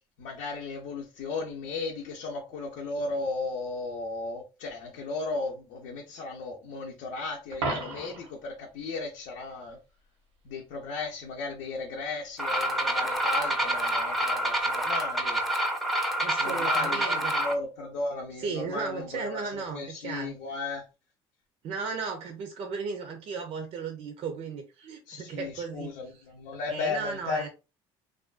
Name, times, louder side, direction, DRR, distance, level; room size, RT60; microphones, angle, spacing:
voice 1, 0.2-9.8 10.4-15.4 16.4-20.8 25.1-27.5, left 3 dB, 75° left, 0.6 m, -35 dB
Coin (dropping), 7.5-8.4 14.5-14.6, right 3 dB, 90° right, 0.9 m, -33 dB
sound 1, 12.4-17.5, right 1 dB, ahead, 0.5 m, -27 dB
voice 2, 16.2-17.3 18.4-20.3 21.6-26.2 26.7-27.5, right 5 dB, 55° right, 0.5 m, -35 dB
2.4 x 2.2 x 2.4 m
supercardioid pair, 80°, 13 cm